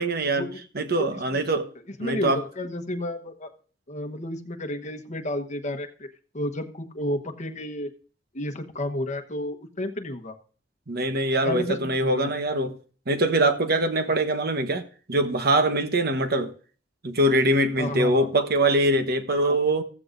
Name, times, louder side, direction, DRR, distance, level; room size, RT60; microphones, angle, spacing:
voice 1, 0.0-0.5 0.7-1.7 2.0-2.4 10.9-12.8 13.1-14.8 15.1-16.5 17.0-19.8, right 1 dB, 55° right, 1.1 m, -23 dB
voice 2, 2.0-3.5 3.9-6.1 6.3-7.9 8.3-10.4 11.4-12.3 17.8-18.3 19.3-19.6, left 1 dB, 40° left, 1.2 m, -31 dB
15.0 x 14.5 x 2.6 m
head